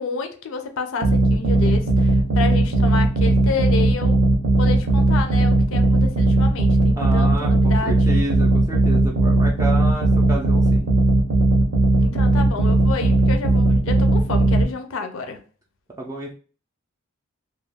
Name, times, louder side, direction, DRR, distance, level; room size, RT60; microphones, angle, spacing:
voice 1, 0.0-4.2 4.6-8.0 12.0-15.4, left 4 dB, 65° left, 0.4 m, -30 dB
sound 1, 1.0-14.6, right 2 dB, 65° right, 0.6 m, -18 dB
voice 2, 7.0-10.9 16.0-16.3, right 1 dB, 15° right, 0.4 m, -30 dB
2.3 x 2.2 x 3.2 m
head